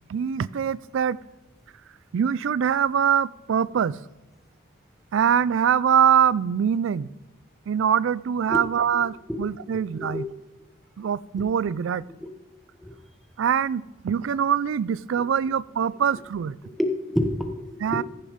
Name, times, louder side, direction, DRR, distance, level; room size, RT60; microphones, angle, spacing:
voice 1, 0.1-1.2 2.1-4.0 5.1-7.1 7.7-10.2 11.0-12.0 13.4-16.6 17.8-18.0, right 8 dB, 65° right, 20 dB, 0.3 m, -23 dB
voice 2, 8.9-9.4 9.7-10.2 11.4-11.5 12.2-12.3 12.8-13.0 16.8-18.0, left 1 dB, ahead, 5 dB, 0.9 m, -29 dB
14.5 x 6.9 x 5.0 m, 1.1 s
head